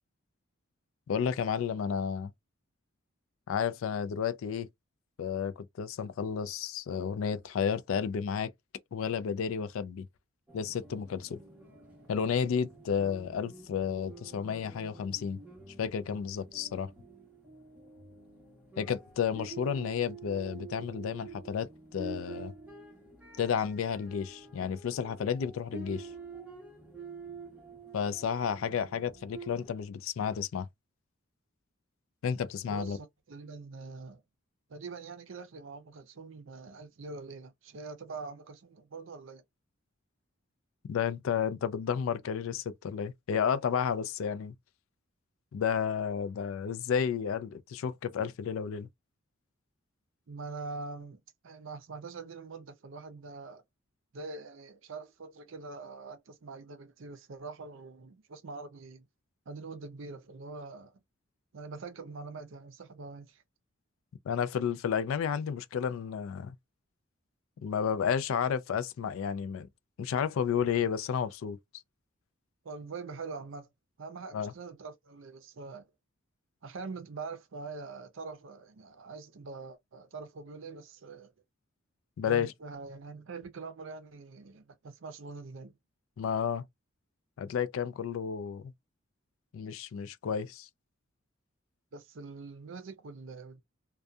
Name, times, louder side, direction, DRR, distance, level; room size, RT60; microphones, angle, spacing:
voice 1, 1.1-2.3 3.5-4.7 5.2-8.5 8.9-10.1 10.5-11.4 12.1-15.4 15.8-16.9 18.8-22.5 23.4-26.1 27.9-30.7 32.2-33.0 40.9-44.5 45.5-48.9 64.3-66.6 67.6-69.7 70.0-71.6 74.3-74.5 82.2-82.5 86.2-86.6 87.4-88.6 89.5-90.7, left 7 dB, 75° left, 0.3 m, -32 dB
sound 1, 10.5-29.7, right 4 dB, 5° right, 0.9 m, -48 dB
voice 2, 32.7-34.2 34.7-39.4 50.3-53.6 54.1-59.1 59.5-61.0 61.5-63.4 72.6-73.7 74.0-75.9 76.6-81.3 82.2-85.8 91.9-93.6, right 4 dB, 65° right, 0.5 m, -44 dB
2.6 x 2.2 x 2.2 m
head